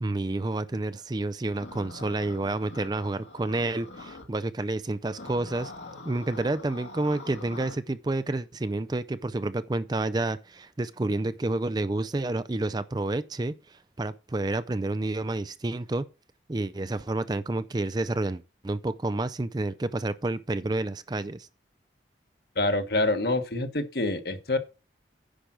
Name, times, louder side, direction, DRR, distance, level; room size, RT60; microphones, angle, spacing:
voice 1, 0.0-5.7 6.0-16.0 16.5-21.5, right 2 dB, 20° right, 0.4 m, -29 dB
sound 1, 1.5-4.3 5.1-7.8, left 2 dB, 80° left, 2.2 m, -44 dB
voice 2, 22.6-24.6, left 2 dB, 60° left, 1.3 m, -26 dB
10.0 x 5.0 x 6.1 m
head